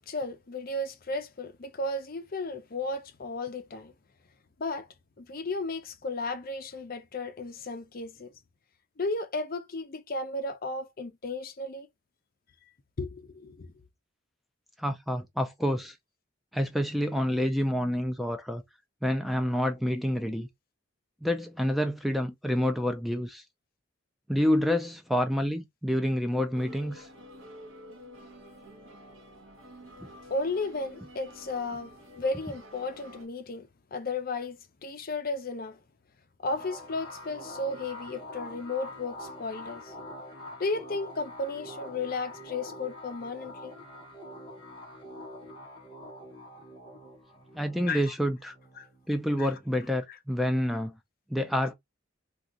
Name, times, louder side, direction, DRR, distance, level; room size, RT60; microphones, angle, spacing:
voice 1, 0.1-3.9 4.6-4.9 5.2-8.3 9.0-11.9 13.0-13.7 30.3-35.8 36.4-39.9 40.6-43.8 47.9-48.1 48.8-48.9 49.4-49.5, left 2 dB, 45° left, 0.6 m, -34 dB
voice 2, 14.8-16.0 16.5-18.6 19.0-20.5 21.2-23.4 24.3-27.1 47.5-48.5 49.1-51.0 51.3-51.7, equal, ahead, 0.3 m, -28 dB
sound 1, 26.5-33.3, equal, 75° right, 1.2 m, -49 dB
sound 2, 36.5-49.7, left 1 dB, 25° left, 1.1 m, -45 dB
2.8 x 2.3 x 3.7 m
head